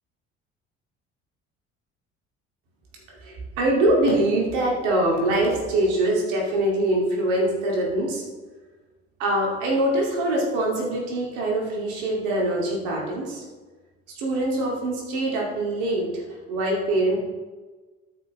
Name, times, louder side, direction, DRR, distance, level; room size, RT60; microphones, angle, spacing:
voice 1, 3.1-8.2 9.2-13.4 14.1-16.1 16.5-17.2, right 1 dB, 70° right, -2 dB, 2.6 m, -23 dB
13.0 x 6.0 x 3.3 m, 1.3 s
figure-of-eight pair, 55°, 36 cm